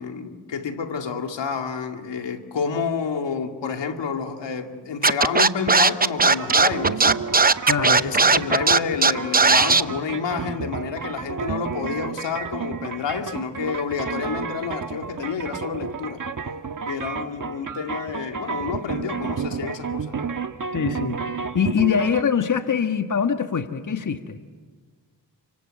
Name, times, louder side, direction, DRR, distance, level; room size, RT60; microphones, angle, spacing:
voice 1, 0.0-16.2 16.8-20.3, left 6 dB, 75° left, 2.4 m, -29 dB
Scratching (performance technique), 5.0-9.8, right 4 dB, 20° right, 0.8 m, -16 dB
sound 1, 6.4-22.2, right 6 dB, 45° right, 1.5 m, -31 dB
voice 2, 7.7-8.0 20.7-24.4, left 7 dB, 45° left, 1.5 m, -23 dB
30.0 x 25.0 x 7.6 m
cardioid pair, 55°, 43 cm